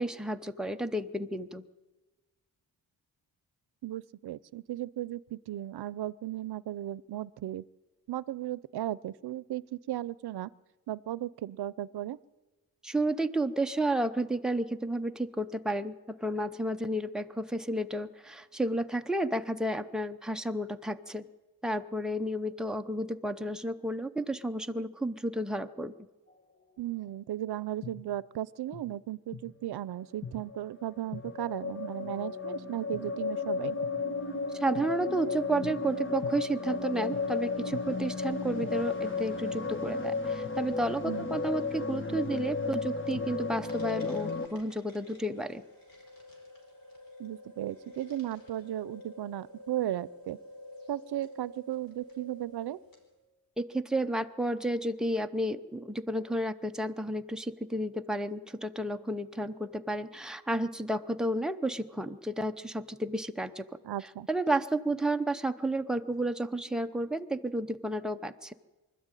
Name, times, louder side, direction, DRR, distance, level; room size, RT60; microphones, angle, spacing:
voice 1, 0.0-1.7 12.8-21.3 21.6-25.9 34.5-45.6 53.6-63.7 64.3-68.5, right 1 dB, ahead, 6 dB, 0.6 m, -32 dB
voice 2, 3.8-7.6 8.1-10.5 10.9-12.2 26.8-33.8 41.0-41.4 47.2-50.4 50.9-52.8 63.8-64.3, right 13 dB, 90° right, 20 dB, 0.6 m, -36 dB
sound 1, 27.8-27.9 28.7-28.8 29.3-29.4 30.0-44.5, left 4 dB, 30° left, 1.7 m, -34 dB
sound 2, 43.6-53.2, left 1 dB, 60° left, 4.7 m, -51 dB
24.5 x 12.5 x 9.0 m, 1.2 s
wide cardioid pair, 165°, 38 cm